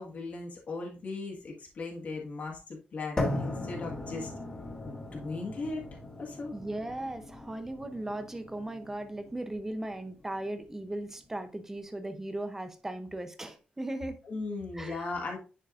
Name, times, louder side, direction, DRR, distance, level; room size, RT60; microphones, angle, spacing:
voice 1, 0.0-4.3 4.8-5.8 6.2-6.5 14.2-15.4, left 3 dB, 50° left, 1.7 m, -38 dB
sound 1, 3.2-11.2, left 1 dB, 20° left, 1.6 m, -38 dB
voice 2, 6.5-14.2 14.7-15.0, right 1 dB, 10° right, 0.7 m, -37 dB
9.8 x 4.5 x 2.5 m
wide cardioid pair, 155°, 3 cm